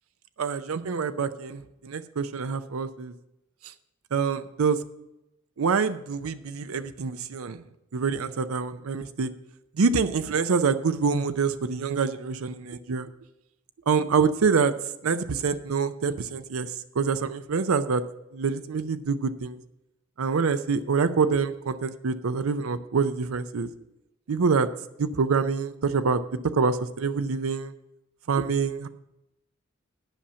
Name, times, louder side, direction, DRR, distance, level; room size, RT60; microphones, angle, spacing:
voice 1, 0.4-3.1 4.1-4.8 5.6-7.6 7.9-9.3 9.8-13.1 13.9-14.7 15.0-18.0 18.3-19.6 20.2-23.7 24.3-24.7 25.0-26.2 26.5-27.7 28.3-28.9, right 5 dB, 90° right, 12 dB, 0.5 m, -26 dB
10.0 x 5.6 x 8.5 m, 0.90 s
head